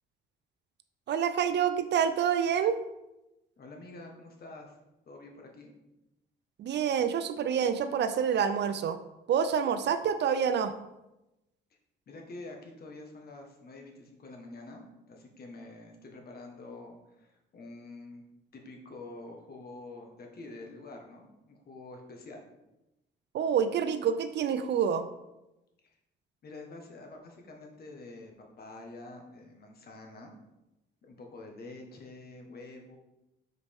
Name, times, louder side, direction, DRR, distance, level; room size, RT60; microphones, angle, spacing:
voice 1, 1.1-2.8 6.6-9.0 9.3-10.8 23.3-25.1, right 7 dB, 60° right, 10 dB, 0.5 m, -27 dB
voice 2, 3.6-4.8 5.1-5.7 12.1-18.2 18.5-22.4 25.8-25.9 26.4-30.3 31.0-33.0, left 2 dB, 50° left, 2 dB, 1.4 m, -47 dB
6.6 x 5.0 x 3.6 m, 0.94 s
cardioid pair, 90°, 20 cm